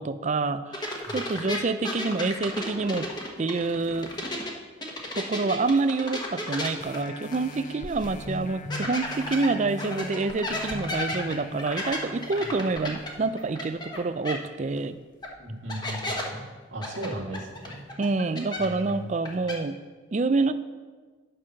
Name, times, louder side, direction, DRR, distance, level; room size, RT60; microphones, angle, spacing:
voice 1, 0.0-3.1 3.4-4.1 5.1-15.0 17.0-17.1 18.0-19.8 20.1-20.5, right 3 dB, 35° right, 11 dB, 0.4 m, -27 dB
sound 1, 0.7-4.5 4.8-7.7 8.0-8.1 8.7-14.0 14.2-14.3 15.2-15.3 15.7-16.2 16.8-18.9 19.2-19.5, left 1 dB, 20° left, 1.1 m, -33 dB
sound 2, 6.8-14.0 14.5-14.6, left 1 dB, 40° left, 0.6 m, -41 dB
voice 2, 15.4-16.4 16.7-17.8 18.6-19.1, right 1 dB, 75° right, -2 dB, 2.0 m, -37 dB
9.9 x 5.5 x 6.3 m, 1.4 s
head